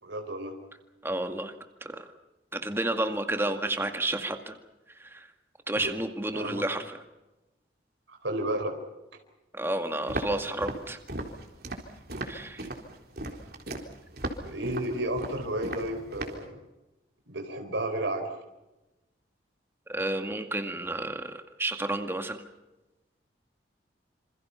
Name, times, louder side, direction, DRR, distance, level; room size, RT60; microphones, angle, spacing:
voice 1, 0.0-0.5 5.8-5.9 6.3-6.6 8.1-8.7 14.4-16.6 17.3-18.3, right 1 dB, 90° right, 4 dB, 4.2 m, -32 dB
voice 2, 1.0-1.5 1.8-2.1 2.5-4.5 5.0-5.3 5.7-7.0 9.5-11.0 12.3-12.6 19.9-22.4, right 1 dB, 15° right, 6 dB, 2.0 m, -31 dB
Walk footsteps, 10.1-16.5, right 1 dB, 55° right, 4.0 m, -37 dB
27.5 x 27.0 x 5.7 m, 1.0 s
head